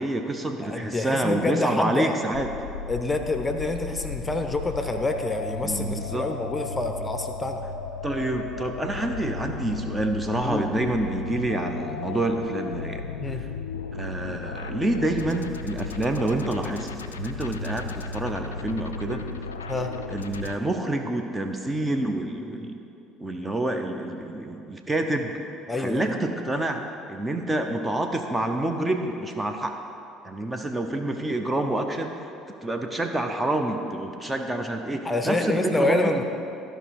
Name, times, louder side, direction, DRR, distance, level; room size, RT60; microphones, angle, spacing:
voice 1, 0.0-2.5 5.6-6.3 8.0-13.0 13.3-13.5 13.9-16.9 17.1-19.2 20.1-22.8 23.2-25.4 25.8-26.8 27.1-29.8 30.2-32.1 32.6-36.1, right 1 dB, 15° right, 5 dB, 0.7 m, -28 dB
voice 2, 0.6-2.2 2.9-7.6 10.4-10.7 13.2-13.4 19.7-19.9 25.7-26.1 35.0-36.2, left 2 dB, 15° left, 5 dB, 0.8 m, -27 dB
sound 1, 2.3-20.6, left 5 dB, 85° left, 0.3 m, -35 dB
14.0 x 5.1 x 4.7 m, 2.7 s
figure-of-eight pair, 60°, 0 cm